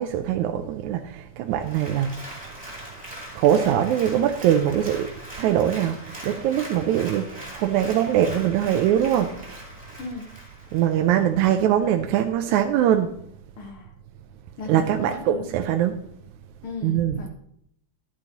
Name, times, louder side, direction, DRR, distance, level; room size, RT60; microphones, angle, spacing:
voice 1, 0.0-2.1 3.4-5.1 5.4-9.6 10.7-13.1 14.7-16.0 16.8-17.2, right 10 dB, 85° right, 2.0 m, -22 dB
Applause, 1.5-11.3 11.7-11.8, equal, 5° right, 2.4 m, -41 dB
voice 2, 10.0-10.3 13.6-13.9 14.6-15.5 16.6-17.3, left 3 dB, 60° left, 1.5 m, -37 dB
12.0 x 8.8 x 2.9 m
omnidirectional pair, 3.4 m